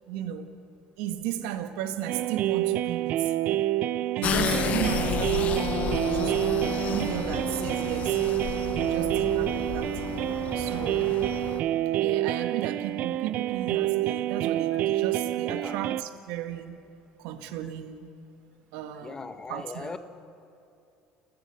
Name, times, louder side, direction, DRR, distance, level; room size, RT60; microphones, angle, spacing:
voice 1, 0.1-0.5 1.0-3.3 4.2-8.2 8.8-9.9 10.5-11.3 11.9-16.8 17.2-18.1 18.7-19.2 19.5-20.0, right 11 dB, 80° right, 8 dB, 1.7 m, -34 dB
sound 1, 2.1-16.0, right 14 dB, 55° right, 0.6 m, -28 dB
sound 2, 4.2-11.6, left 8 dB, 50° left, 1.3 m, -31 dB
voice 2, 15.5-15.8 19.0-20.0, left 4 dB, 25° left, 9 dB, 1.5 m, -39 dB
30.0 x 14.5 x 7.0 m, 2.8 s
supercardioid pair, 95°, 3 cm